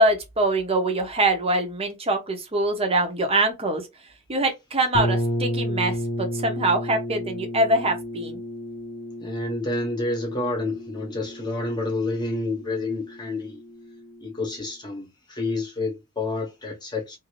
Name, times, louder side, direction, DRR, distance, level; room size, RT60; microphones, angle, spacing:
voice 1, 0.0-3.8 4.3-8.4, right 1 dB, 25° right, 0.8 m, -23 dB
sound 1, 4.9-14.6, equal, 40° left, 0.8 m, -32 dB
voice 2, 9.2-13.6 14.2-17.2, left 2 dB, 20° left, 1.0 m, -29 dB
2.6 x 2.5 x 3.1 m
head